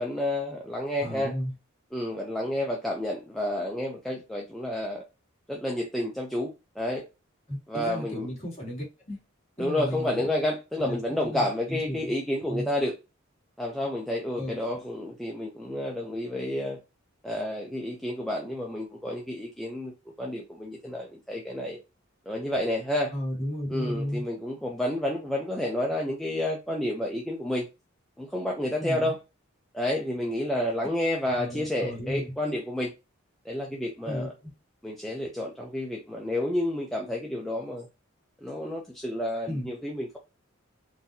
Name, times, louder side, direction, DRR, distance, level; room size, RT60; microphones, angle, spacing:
voice 1, 0.0-1.3 1.9-5.0 5.5-7.0 7.7-8.3 9.6-12.9 13.6-16.8 17.2-19.9 20.2-21.8 22.3-23.1 23.7-27.7 28.2-29.2 29.7-32.9 33.4-34.3 34.8-37.9 38.4-40.2, left 1 dB, ahead, 0.5 m, -30 dB
voice 2, 1.0-1.5 7.5-9.2 9.6-10.3 10.8-12.1 12.5-12.7 14.3-14.6 23.1-24.3 28.8-29.1 31.3-32.3 34.1-34.5 39.5-39.7, equal, 30° left, 2.2 m, -34 dB
4.0 x 2.7 x 2.7 m
head